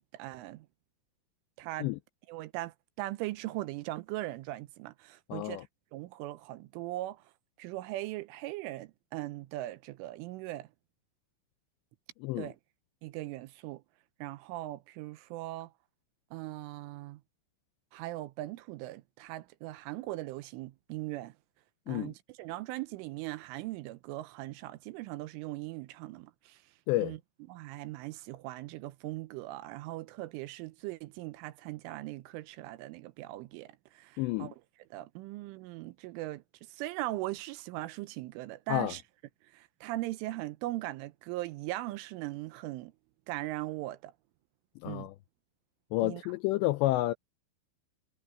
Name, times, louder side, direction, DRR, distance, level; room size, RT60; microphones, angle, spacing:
voice 1, 0.1-0.7 1.6-1.9 2.3-5.7 5.9-7.2 7.6-10.7 12.4-12.6 13.0-13.8 14.2-15.7 16.3-17.2 17.9-21.3 21.9-26.6 27.0-27.2 27.5-34.6 34.9-39.0 39.5-42.9 43.3-44.1 44.9-45.1 46.0-46.2, right 17 dB, 80° right, 3.2 m, -39 dB
voice 2, 5.3-5.6 12.2-12.5 21.9-22.1 26.9-27.2 34.2-34.5 38.7-38.9 44.8-45.1 45.9-47.1, left 17 dB, 85° left, 2.5 m, -30 dB
omnidirectional pair, 5.7 m